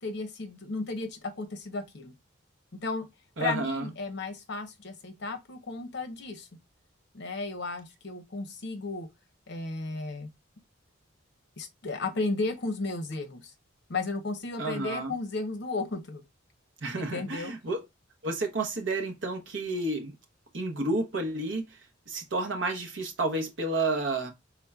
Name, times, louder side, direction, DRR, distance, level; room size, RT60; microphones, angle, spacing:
voice 1, 0.0-2.1 2.8-3.1 3.4-6.5 7.1-9.1 9.5-10.3 11.6-13.5 13.9-16.2 17.0-17.5, left 3 dB, 60° left, 0.8 m, -34 dB
voice 2, 3.4-3.9 14.6-15.1 16.8-17.8 18.2-20.1 20.5-21.6 22.1-24.3, right 2 dB, 65° right, 0.9 m, -30 dB
4.2 x 3.6 x 2.3 m
head